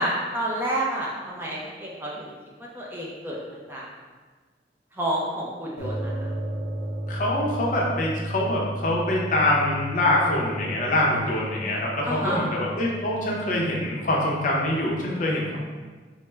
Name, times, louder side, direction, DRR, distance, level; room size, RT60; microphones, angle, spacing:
voice 1, 0.0-2.3 2.6-3.4 3.7-3.9 5.0-6.3 12.0-12.4, right 1 dB, 10° right, -5 dB, 0.4 m, -29 dB
sound 1, 5.8-14.9, right 1 dB, 75° left, 0.8 m, -34 dB
voice 2, 7.1-15.6, left 1 dB, 45° left, -3 dB, 0.6 m, -24 dB
3.3 x 2.0 x 3.2 m, 1.4 s
head